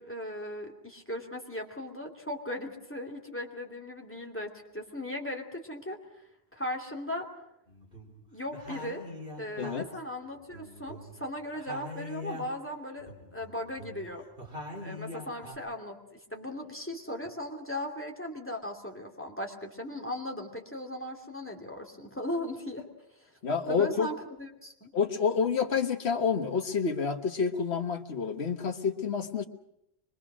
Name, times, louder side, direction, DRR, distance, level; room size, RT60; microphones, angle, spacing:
voice 1, 0.0-6.2 6.5-7.3 8.3-9.0 9.4-14.2 14.8-16.0 16.3-22.8 23.2-23.3 23.7-24.9, left 1 dB, 10° left, 3 dB, 2.7 m, -38 dB
sound 1, 7.7-8.2 8.5-11.3 11.5-12.7 13.0-15.6, left 1 dB, 60° right, 4.0 m, -43 dB
voice 2, 23.4-24.1 24.9-29.5, left 6 dB, 80° left, 7 dB, 1.6 m, -28 dB
25.0 x 23.0 x 6.2 m, 0.82 s
omnidirectional pair, 1.1 m